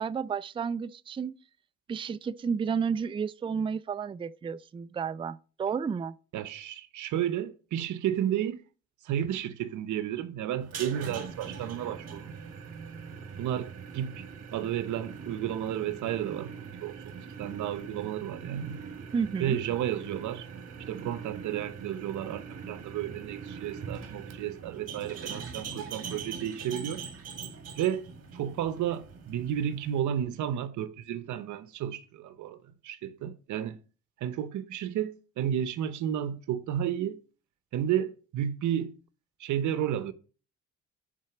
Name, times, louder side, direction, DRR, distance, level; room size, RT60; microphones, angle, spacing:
voice 1, 0.0-1.3 1.9-6.1 19.1-19.6, right 6 dB, 20° right, 0.3 m, -31 dB
voice 2, 6.3-8.6 9.0-12.3 13.4-14.2 14.5-17.1 17.4-18.8 19.4-20.5 20.9-27.0 27.8-28.0 28.3-32.6 32.8-33.8 34.2-37.2 37.7-38.9 39.4-40.1, right 10 dB, 75° right, 0.8 m, -32 dB
sound 1, 10.6-30.0, right 6 dB, 55° right, 1.6 m, -42 dB
7.5 x 4.2 x 5.9 m
cardioid pair, 90°, 30 cm